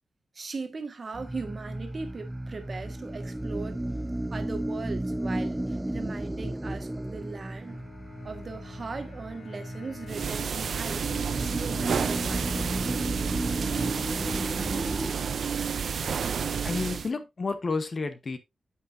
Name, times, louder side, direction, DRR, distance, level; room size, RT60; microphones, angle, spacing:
voice 1, 0.3-3.8 4.3-7.8 8.2-12.7, right 4 dB, 35° right, 1.5 m, -39 dB
sound 1, 1.1-15.1, right 1 dB, 10° right, 0.4 m, -34 dB
Bowed string instrument, 7.6-15.8, left 4 dB, 55° left, 4.9 m, -47 dB
sound 2, 10.1-17.1, right 6 dB, 65° right, 0.5 m, -30 dB
voice 2, 16.6-18.4, left 4 dB, 35° left, 0.9 m, -30 dB
9.0 x 8.5 x 2.6 m
wide cardioid pair, 180°, 0 cm